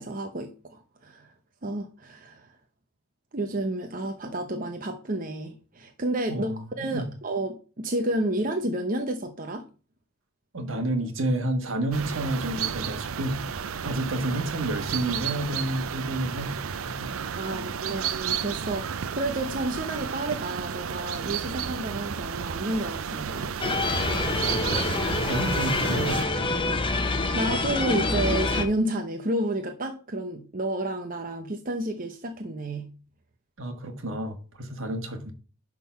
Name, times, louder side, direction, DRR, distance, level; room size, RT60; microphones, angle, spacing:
voice 1, 0.0-1.3 1.6-2.5 3.3-6.5 6.8-9.7 17.4-23.5 27.3-32.9, right 1 dB, 40° right, 0.8 m, -30 dB
voice 2, 6.3-7.1 10.5-17.1 17.5-17.9 24.4-24.9 25.3-26.5 33.6-35.3, right 1 dB, 70° right, 1.5 m, -31 dB
sound 1, 11.9-26.2, right 7 dB, 85° right, 0.5 m, -32 dB
sound 2, 23.6-28.6, left 3 dB, 25° left, 0.9 m, -26 dB
10.5 x 3.7 x 5.8 m
head